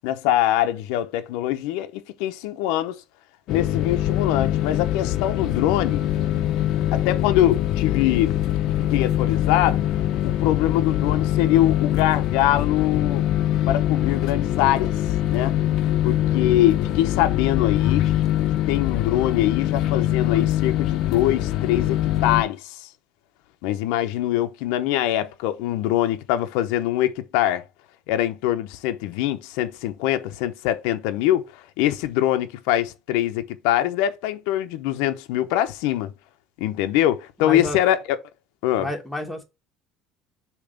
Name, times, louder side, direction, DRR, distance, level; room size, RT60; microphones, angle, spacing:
voice 1, 0.0-3.0 3.5-6.0 6.9-8.4 8.9-9.8 10.2-13.2 13.7-14.9 15.3-15.6 16.0-18.0 18.7-22.9 23.6-27.6 28.1-36.1 36.6-38.0 38.6-38.9, left 13 dB, 85° left, 0.7 m, -23 dB
sound 1, 3.5-22.4, left 12 dB, 50° left, 0.6 m, -23 dB
voice 2, 37.4-37.8 38.8-39.4, left 1 dB, ahead, 1.2 m, -29 dB
6.9 x 2.9 x 5.2 m
cardioid pair, 170°, 0 cm